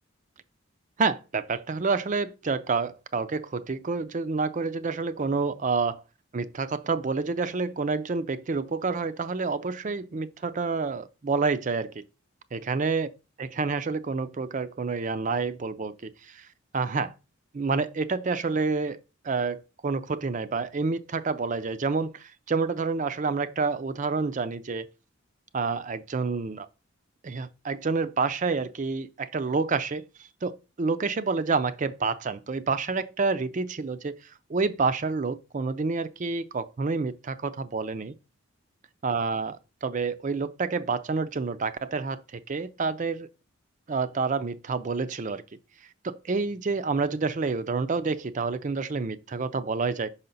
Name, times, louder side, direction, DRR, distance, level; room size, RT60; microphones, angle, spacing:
voice 1, 1.0-6.0 6.3-12.0 12.5-13.1 13.4-16.5 16.7-17.1 17.5-19.0 19.2-24.9 25.5-26.7 27.2-30.0 30.4-34.2 34.5-38.1 39.0-43.3 43.9-45.4 46.0-50.1, right 4 dB, 35° right, 0.4 m, -28 dB
5.6 x 5.6 x 3.9 m
head